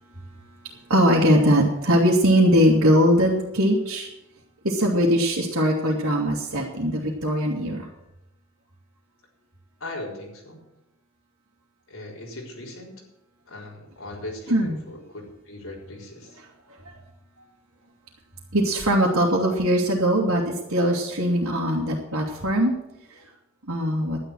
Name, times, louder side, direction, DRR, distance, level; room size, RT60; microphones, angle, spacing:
voice 1, 0.9-4.1 4.6-7.8 14.5-14.8 18.5-22.7 23.7-24.2, equal, 90° right, -5 dB, 2.5 m, -21 dB
voice 2, 9.8-10.6 11.9-12.9 13.5-16.4, left 1 dB, 80° left, -2 dB, 4.1 m, -39 dB
12.0 x 10.5 x 6.3 m, 0.89 s
head